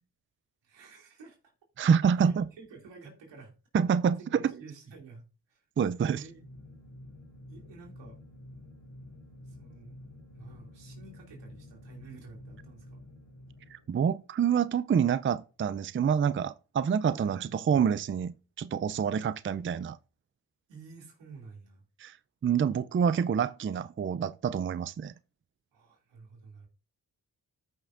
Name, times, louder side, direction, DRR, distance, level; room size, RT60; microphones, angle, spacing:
voice 1, 0.6-1.5 2.2-3.5 4.3-5.2 5.5-5.6 6.0-6.4 7.5-8.2 9.4-10.0 10.3-13.0 17.1-17.6 20.7-21.8 25.7-26.7, right 4 dB, 90° right, 2.8 m, -50 dB
voice 2, 1.8-2.4 3.7-4.5 5.8-6.2 13.7-20.0 22.0-22.2 22.4-25.1, right 7 dB, 30° right, 0.5 m, -27 dB
sound 1, 5.9-14.3, left 1 dB, 85° left, 2.3 m, -50 dB
14.0 x 5.7 x 2.6 m
supercardioid pair, 45°, 42 cm